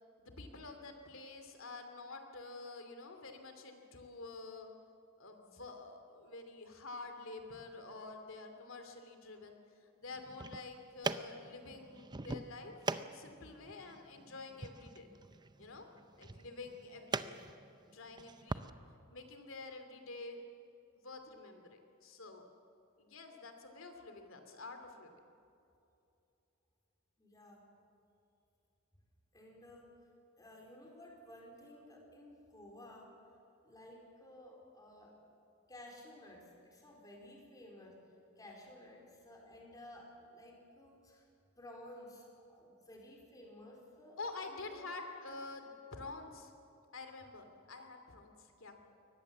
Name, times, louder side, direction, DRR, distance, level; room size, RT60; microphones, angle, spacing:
voice 1, 0.2-4.7 5.2-15.1 15.6-15.9 16.2-17.5 17.9-18.7 19.1-20.4 20.9-22.4 23.0-25.1 44.2-46.5 46.9-48.8, left 3 dB, 75° left, 6 dB, 2.7 m, -48 dB
sound 1, 10.1-18.7, right 3 dB, 20° right, 0.6 m, -43 dB
voice 2, 27.2-27.7 29.3-29.9 30.4-33.1 33.6-35.1 35.7-38.0 38.4-41.3 41.6-44.9, left 1 dB, 20° left, -1 dB, 4.3 m, -55 dB
23.5 x 19.5 x 7.5 m, 2.7 s
head